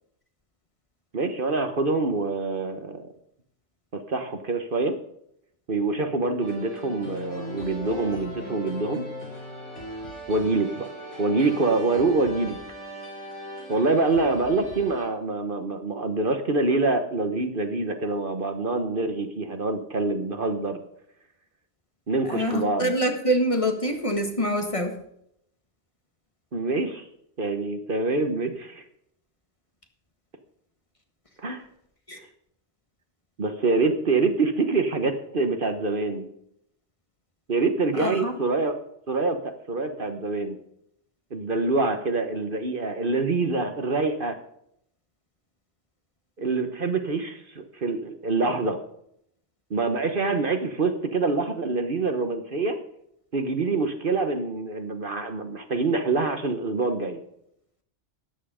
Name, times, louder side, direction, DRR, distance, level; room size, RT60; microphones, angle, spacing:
voice 1, 1.1-3.0 3.9-5.0 5.7-9.0 10.3-10.9 11.2-12.6 13.7-20.8 22.1-22.9 26.5-27.0 27.4-28.8 31.4-31.6 33.4-36.3 37.5-38.8 39.1-40.6 41.3-44.4 46.4-48.8 49.7-52.8 53.3-57.2, right 3 dB, 50° right, 7 dB, 1.3 m, -25 dB
sound 1, 6.4-15.0, equal, 80° left, 4.5 m, -39 dB
voice 2, 22.2-24.9 32.1-32.2 38.0-38.3, equal, 30° left, 4 dB, 1.7 m, -25 dB
13.0 x 9.5 x 5.0 m, 0.73 s
omnidirectional pair, 1.2 m